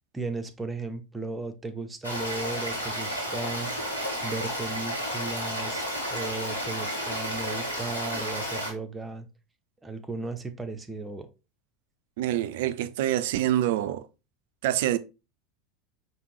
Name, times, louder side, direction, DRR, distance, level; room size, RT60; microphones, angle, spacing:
voice 1, 0.1-3.7 4.2-5.8 6.1-9.3 9.8-11.3, right 3 dB, 15° right, 0.6 m, -35 dB
Stream, 2.0-8.7, equal, 85° left, 1.3 m, -32 dB
voice 2, 12.2-14.1 14.6-15.0, right 13 dB, 60° right, 0.3 m, -26 dB
5.0 x 2.7 x 3.0 m
figure-of-eight pair, 80°, 0 cm